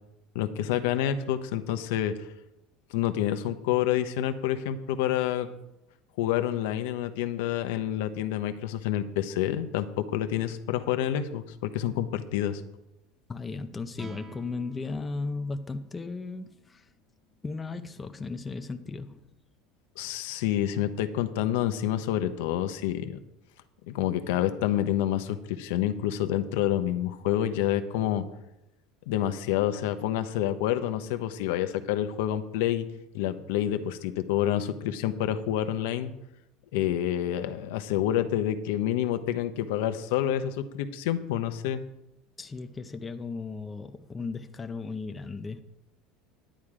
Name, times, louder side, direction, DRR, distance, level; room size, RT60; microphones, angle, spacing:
voice 1, 0.3-2.3 2.9-5.5 6.2-12.6 20.0-23.2 23.9-28.2 29.1-32.9 33.1-36.1 36.7-41.8, left 11 dB, 80° left, 10 dB, 0.9 m, -28 dB
voice 2, 13.3-16.8 17.4-19.2 42.4-45.6, left 4 dB, 15° left, 8 dB, 0.7 m, -36 dB
sound 1, 13.9-20.3, equal, 20° right, 1.5 m, -53 dB
10.5 x 9.3 x 4.9 m, 0.88 s
cardioid pair, 145°, 0 cm